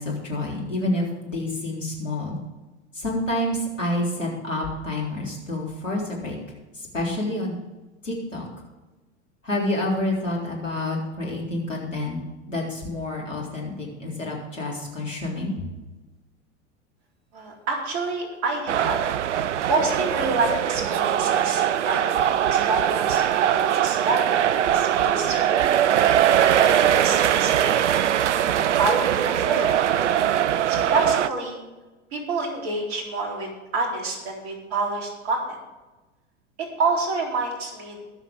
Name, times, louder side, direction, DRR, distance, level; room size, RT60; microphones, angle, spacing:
voice 1, 0.0-2.4 2.9-6.4 6.7-7.5 8.0-8.5 9.4-12.2 12.5-15.6, left 1 dB, 85° left, -2 dB, 3.8 m, -28 dB
voice 2, 17.3-19.0 19.7-22.0 22.5-25.8 26.3-28.0 28.4-29.7 30.7-31.6 32.1-35.6 36.6-38.0, right 3 dB, 55° right, 0 dB, 3.9 m, -28 dB
sound 1, 18.7-31.3, right 10 dB, 70° right, 0.6 m, -21 dB
22.0 x 7.3 x 3.7 m, 1.1 s
figure-of-eight pair, 85°, 37 cm